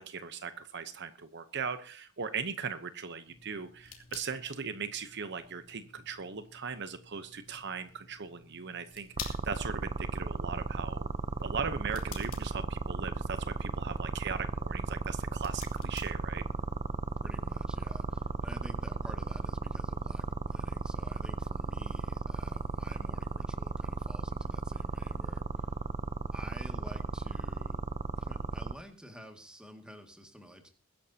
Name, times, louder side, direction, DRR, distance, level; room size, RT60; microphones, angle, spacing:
voice 1, 0.0-11.1 11.4-16.4, right 6 dB, 55° right, 10 dB, 0.9 m, -39 dB
sound 1, 3.3-16.8, left 7 dB, 80° left, 2.9 m, -52 dB
sound 2, 9.2-28.7, right 3 dB, 35° right, 0.5 m, -35 dB
voice 2, 17.2-25.7 26.3-27.8 28.2-30.7, equal, 5° right, 4 dB, 2.1 m, -50 dB
22.0 x 11.0 x 2.9 m, 0.37 s
head